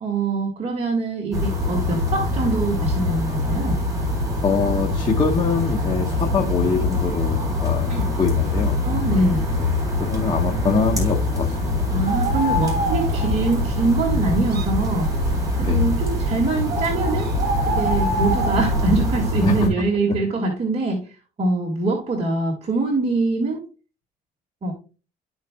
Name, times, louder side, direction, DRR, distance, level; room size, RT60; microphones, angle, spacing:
voice 1, 0.0-3.8 7.9-8.1 8.8-9.5 11.9-15.1 15.6-17.3 17.8-21.0 21.4-23.6 24.6-24.7, right 3 dB, 40° right, -2 dB, 2.0 m, -23 dB
sound 1, 1.3-19.7, left 2 dB, 20° right, 3.9 m, -24 dB
voice 2, 4.4-7.9 8.2-8.8 9.6-11.7 15.6-15.9 19.4-19.7, left 5 dB, 30° left, 0 dB, 1.1 m, -23 dB
Bird, 12.1-19.2, right 2 dB, 65° right, 1.7 m, -27 dB
13.0 x 4.6 x 2.3 m, 0.34 s
cardioid pair, 110°, 17 cm